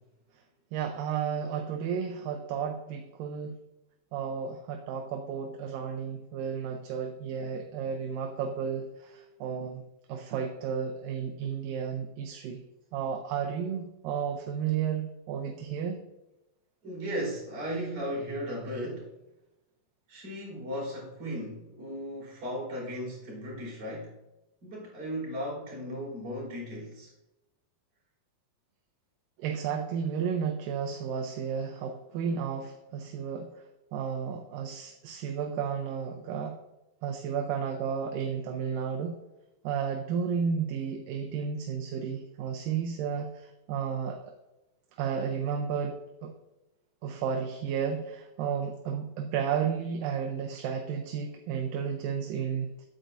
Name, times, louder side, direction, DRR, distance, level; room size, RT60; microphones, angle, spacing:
voice 1, 0.7-3.6 4.1-9.8 10.1-12.6 12.9-16.0 29.4-33.5 33.9-36.6 37.0-39.2 39.6-44.3 45.0-46.3 47.0-52.9, right 7 dB, 80° right, 3 dB, 2.3 m, -32 dB
voice 2, 16.8-19.1 20.1-24.1 24.6-27.1, equal, 40° right, -5 dB, 4.1 m, -36 dB
9.1 x 8.5 x 2.6 m, 0.96 s
omnidirectional pair, 4.2 m